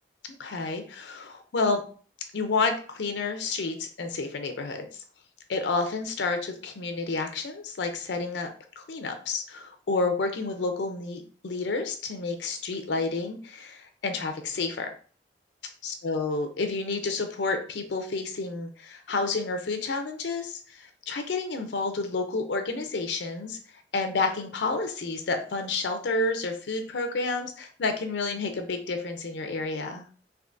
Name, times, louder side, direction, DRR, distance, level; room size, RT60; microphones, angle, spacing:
voice 1, 0.4-1.8 2.3-4.9 5.5-8.5 8.8-14.9 15.8-23.6 23.9-30.1, left 3 dB, 90° left, 6 dB, 0.5 m, -30 dB
3.5 x 2.6 x 2.5 m, 0.42 s
head